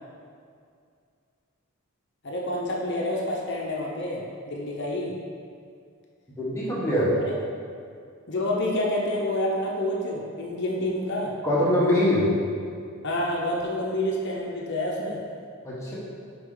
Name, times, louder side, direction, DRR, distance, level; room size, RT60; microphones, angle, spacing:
voice 1, 2.2-5.1 8.3-11.3 13.0-15.2, left 1 dB, 50° left, -2 dB, 0.9 m, -28 dB
voice 2, 6.4-7.1 11.4-12.3 15.6-15.9, left 1 dB, 15° left, -8 dB, 1.3 m, -23 dB
6.7 x 5.2 x 3.9 m, 2.3 s
head